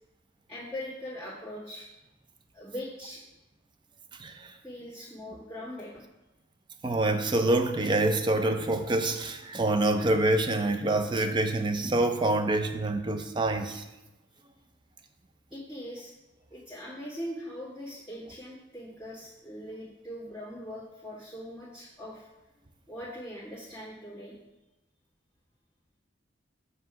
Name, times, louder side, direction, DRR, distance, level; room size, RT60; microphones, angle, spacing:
voice 1, 0.5-1.9 2.5-3.2 4.6-5.9 15.5-16.1 16.5-22.3 22.9-24.4, equal, ahead, -15 dB, 1.9 m, -41 dB
voice 2, 4.2-4.5 6.8-13.9, right 2 dB, 25° right, 7 dB, 0.4 m, -26 dB
7.5 x 2.7 x 5.7 m, 1.0 s
head